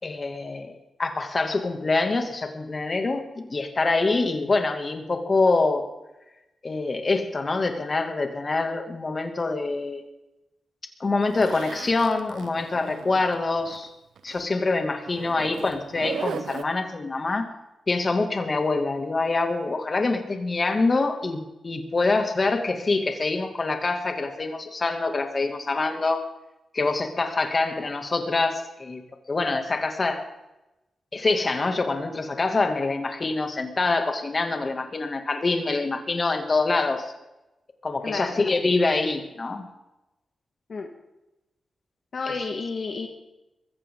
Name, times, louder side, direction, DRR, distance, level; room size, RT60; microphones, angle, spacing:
voice 1, 0.0-5.9 6.6-10.0 11.0-13.9 14.2-17.5 17.9-26.3 26.7-29.0 29.3-30.3 31.1-37.1 37.8-39.7, left 3 dB, 45° left, 5 dB, 2.5 m, -25 dB
Zipper (clothing), 11.3-13.9 14.2-14.4 15.1-16.6, right 7 dB, 90° right, 1.1 m, -37 dB
voice 2, 38.0-38.4 40.7-40.9 42.1-43.1, left 4 dB, 65° left, 2 dB, 1.8 m, -31 dB
22.0 x 15.5 x 3.9 m, 0.98 s
cardioid pair, 55°, 0 cm